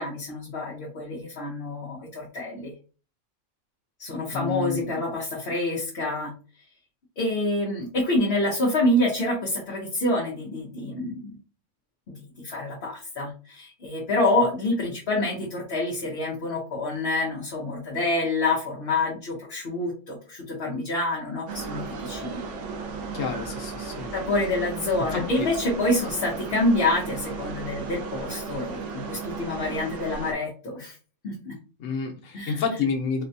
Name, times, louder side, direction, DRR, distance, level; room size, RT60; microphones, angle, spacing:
voice 1, 0.0-2.7 4.0-6.3 7.2-11.4 12.1-22.4 24.1-31.0 31.2-31.6 32.3-32.6, left 2 dB, 55° left, -3 dB, 1.0 m, -27 dB
voice 2, 4.3-4.8 23.1-24.1 25.1-25.5 31.8-33.2, left 5 dB, 90° left, 2 dB, 1.2 m, -29 dB
sound 1, 21.5-30.3, right 4 dB, 70° right, 0.9 m, -35 dB
4.0 x 2.2 x 2.7 m, 0.36 s
omnidirectional pair, 1.3 m